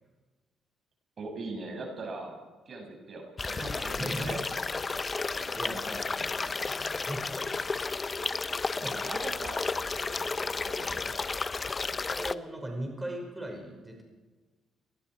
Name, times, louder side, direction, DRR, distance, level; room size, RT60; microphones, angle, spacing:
voice 1, 1.2-2.4 2.7-4.4 8.8-11.2, right 3 dB, 50° right, 3 dB, 6.3 m, -41 dB
sound 1, 3.4-12.3, left 4 dB, 30° left, 0.8 m, -32 dB
voice 2, 3.9-4.4 4.9-7.3 8.7-9.0 12.2-14.0, right 1 dB, 10° right, 2 dB, 5.2 m, -39 dB
28.0 x 20.0 x 4.6 m, 1.3 s
cardioid pair, 90°, 0 cm